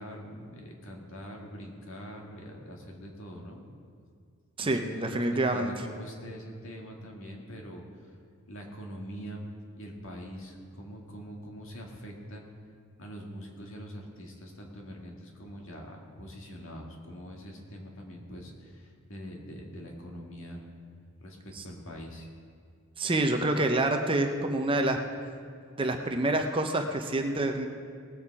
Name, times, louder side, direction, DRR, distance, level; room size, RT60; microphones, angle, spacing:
voice 1, 0.0-3.6 4.6-7.8 8.5-9.5 9.8-12.4 13.0-20.6 21.2-22.3, equal, 60° left, 0 dB, 2.0 m, -43 dB
voice 2, 4.6-5.9 21.5-21.6 23.0-25.0 25.8-27.7, right 2 dB, 25° right, 5 dB, 0.7 m, -27 dB
19.0 x 8.0 x 4.8 m, 2.2 s
head